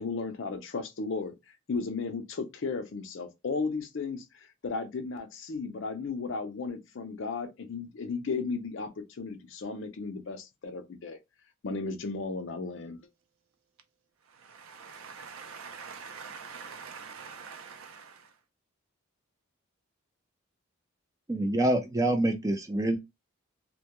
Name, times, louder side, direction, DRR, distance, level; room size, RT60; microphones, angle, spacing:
voice 1, 0.0-1.3 1.7-11.2 11.6-13.0, left 4 dB, 60° left, 0.5 m, -35 dB
voice 2, 14.4-18.3, right 5 dB, 75° right, 0.5 m, -44 dB
voice 3, 21.3-23.0, right 1 dB, 15° right, 0.3 m, -26 dB
2.2 x 2.1 x 2.9 m
head